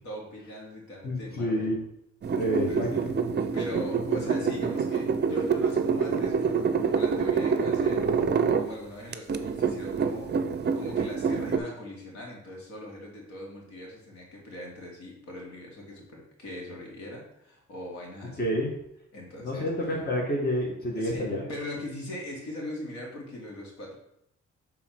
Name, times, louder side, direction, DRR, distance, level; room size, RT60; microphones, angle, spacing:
voice 1, 0.0-1.7 2.7-3.1 3.4-8.1 8.6-10.4 10.7-18.5 19.1-20.0 21.0-24.0, left 1 dB, 65° left, -2 dB, 2.3 m, -40 dB
voice 2, 1.0-1.8 2.3-3.1 18.4-18.7 19.4-21.5, equal, 30° left, -1 dB, 1.6 m, -29 dB
sound 1, 2.2-8.7 9.1-11.6, right 5 dB, 35° right, 0.5 m, -26 dB
6.7 x 3.7 x 4.5 m, 0.75 s
cardioid pair, 90°, 30 cm